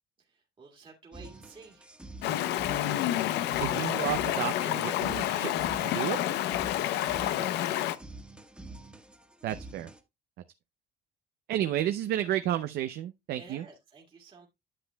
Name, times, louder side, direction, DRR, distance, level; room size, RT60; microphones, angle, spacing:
voice 1, 0.3-1.9 6.9-7.9 13.3-14.5, right 4 dB, 30° right, 1.8 m, -51 dB
sound 1, 1.1-10.0, right 2 dB, 5° right, 1.4 m, -48 dB
Stream, 2.2-8.0, left 13 dB, 80° left, 0.6 m, -29 dB
voice 2, 3.6-6.2 9.4-9.9 11.5-13.6, right 12 dB, 70° right, 0.6 m, -32 dB
9.8 x 7.5 x 2.2 m
cardioid pair, 110°, 17 cm